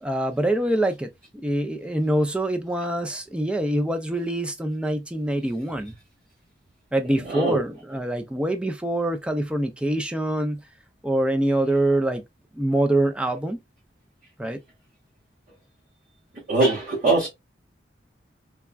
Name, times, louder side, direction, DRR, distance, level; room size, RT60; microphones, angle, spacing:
voice 1, 0.0-1.1 1.4-5.9 6.9-10.6 11.0-12.2 12.6-13.6 14.4-14.6, right 1 dB, 5° right, 0.3 m, -24 dB
voice 2, 7.2-7.6 16.5-17.3, right 2 dB, 50° right, 1.3 m, -21 dB
3.4 x 2.1 x 2.3 m
head